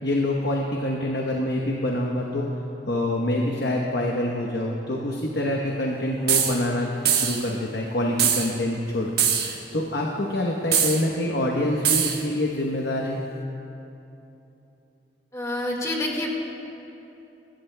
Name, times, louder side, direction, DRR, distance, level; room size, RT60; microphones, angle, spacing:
voice 1, 0.0-2.5 2.9-9.1 9.7-13.2, left 1 dB, 75° left, -1 dB, 1.0 m, -26 dB
sound 1, 6.3-6.6 7.1-7.4 8.2-8.5 9.2-9.6 10.7-11.0 11.8-12.2, right 8 dB, 65° right, 1.3 m, -22 dB
voice 2, 15.3-16.3, left 1 dB, 20° left, -1 dB, 1.7 m, -27 dB
23.5 x 13.0 x 2.2 m, 2.9 s
head